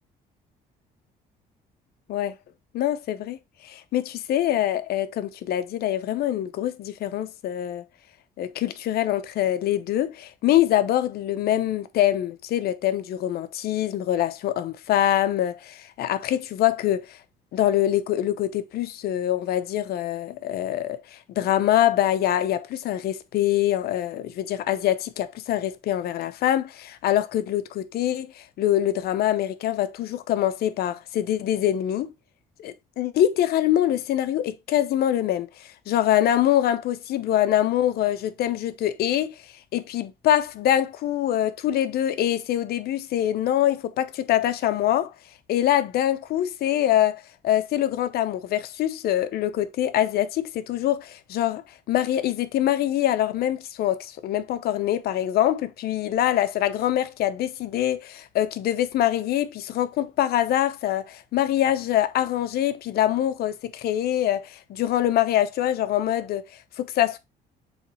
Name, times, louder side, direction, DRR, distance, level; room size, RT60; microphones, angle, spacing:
voice 1, 2.7-3.4 3.6-7.8 8.4-17.2 17.5-32.1 32.6-39.3 39.7-45.1 45.5-66.4 66.8-67.2, left 12 dB, 70° left, 0.8 m, -24 dB
7.2 x 3.3 x 4.1 m
cardioid pair, 110°, 17 cm